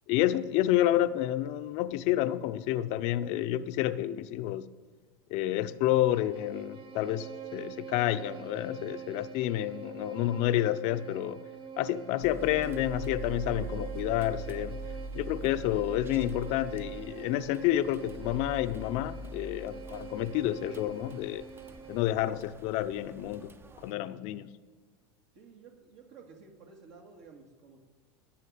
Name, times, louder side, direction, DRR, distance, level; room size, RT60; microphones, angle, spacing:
voice 1, 0.1-4.7 5.3-11.4 11.8-14.8 15.1-21.4 21.9-23.5 23.8-24.5, left 13 dB, 55° left, 11 dB, 0.6 m, -29 dB
Bowed string instrument, 5.6-22.2, right 7 dB, 40° right, 1.2 m, -45 dB
sound 1, 12.2-23.9, right 2 dB, 15° right, 0.7 m, -43 dB
voice 2, 25.3-27.8, right 5 dB, 60° right, 1 dB, 2.0 m, -53 dB
11.5 x 6.4 x 9.4 m, 1.4 s
supercardioid pair, 115°, 13 cm